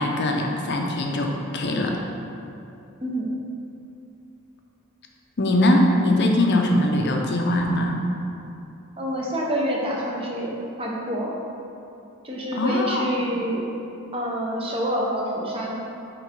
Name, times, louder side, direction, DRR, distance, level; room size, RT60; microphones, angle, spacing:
voice 1, 0.0-2.0 5.4-8.0 12.5-13.0, left 1 dB, 50° left, 2 dB, 0.6 m, -21 dB
voice 2, 3.0-3.4 9.0-11.3 12.2-13.6 14.1-15.8, equal, 25° right, -3 dB, 0.8 m, -27 dB
6.1 x 3.3 x 5.2 m, 2.7 s
head